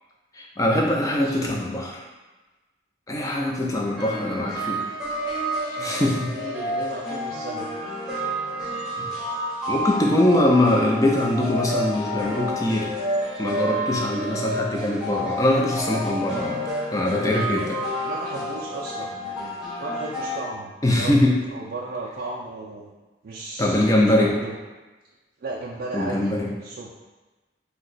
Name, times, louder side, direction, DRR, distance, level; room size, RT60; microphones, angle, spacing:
voice 1, 0.3-2.0 3.1-4.9 5.8-6.3 9.0-9.1 9.7-12.9 13.4-16.6 16.9-17.8 20.8-21.4 23.6-24.3 25.9-26.5, left 1 dB, 20° left, -1 dB, 0.4 m, -22 dB
voice 2, 1.1-1.5 3.7-3.9 5.6-6.0 6.3-8.2 8.7-8.8 17.4-17.7 18.0-22.9 23.2-23.8 24.2-24.6 25.4-26.3 26.6-26.9, right 2 dB, 55° right, -5 dB, 0.3 m, -36 dB
sound 1, 4.0-20.4, equal, 5° right, 0.7 m, -30 dB
2.8 x 2.2 x 3.9 m, 1.2 s
head